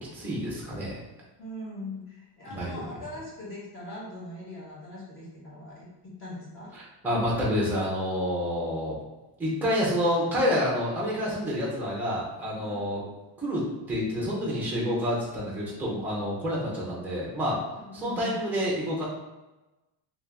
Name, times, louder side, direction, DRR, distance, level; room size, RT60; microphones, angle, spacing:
voice 1, 0.1-1.0 2.5-2.7 6.7-9.0 9.4-13.0 13.4-17.6 17.9-19.0, equal, 5° right, -5 dB, 0.5 m, -28 dB
voice 2, 1.4-5.9 6.2-6.7 12.6-12.9 17.7-18.4, left 1 dB, 25° left, -6 dB, 0.9 m, -41 dB
2.9 x 2.7 x 3.4 m, 1.1 s
cardioid pair, 180°, 50 cm